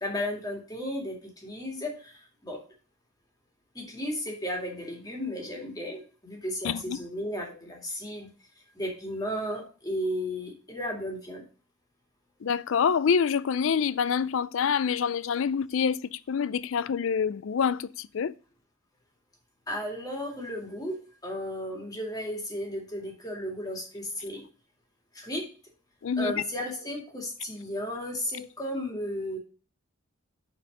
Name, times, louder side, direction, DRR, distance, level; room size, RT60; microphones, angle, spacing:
voice 1, 0.0-2.6 3.7-11.4 19.7-24.4 25.1-25.5 26.2-29.4, equal, 15° left, 2.2 m, -34 dB
voice 2, 6.6-7.0 12.4-18.3 26.0-26.4, left 6 dB, 65° left, 0.4 m, -26 dB
6.1 x 4.6 x 6.6 m
head